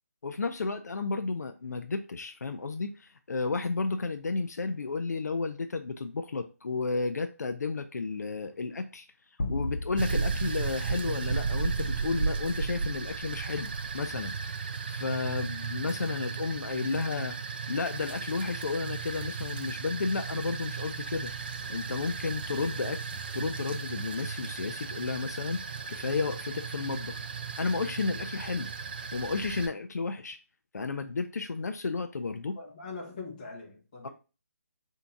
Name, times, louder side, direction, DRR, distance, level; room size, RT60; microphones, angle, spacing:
voice 1, 0.2-9.1 9.5-14.4 14.9-17.4 17.7-21.3 21.7-27.2 27.6-28.7 29.1-30.4 30.7-32.6 34.0-34.1, left 4 dB, 85° left, 0.5 m, -32 dB
sound 1, 9.4-12.0, left 2 dB, 65° left, 1.1 m, -37 dB
sound 2, 10.0-29.7, right 5 dB, 35° right, 0.3 m, -35 dB
voice 2, 32.5-34.1, left 4 dB, 30° left, 1.2 m, -42 dB
3.5 x 2.8 x 4.4 m
hypercardioid pair, 170°, 9 cm